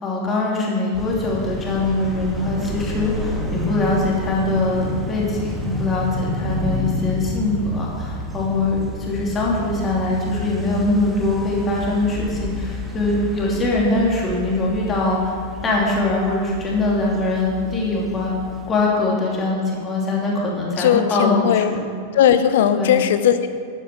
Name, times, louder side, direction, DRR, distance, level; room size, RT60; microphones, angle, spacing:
voice 1, 0.0-15.4 15.6-18.3 18.7-21.9 22.7-23.1, left 2 dB, 20° left, -3 dB, 2.9 m, -22 dB
sound 1, 0.9-18.7, left 1 dB, 5° right, 1.8 m, -30 dB
voice 2, 20.8-21.7 22.1-23.6, left 9 dB, 55° left, 11 dB, 0.8 m, -17 dB
13.5 x 9.1 x 5.8 m, 2.3 s
figure-of-eight pair, 90°, 0 cm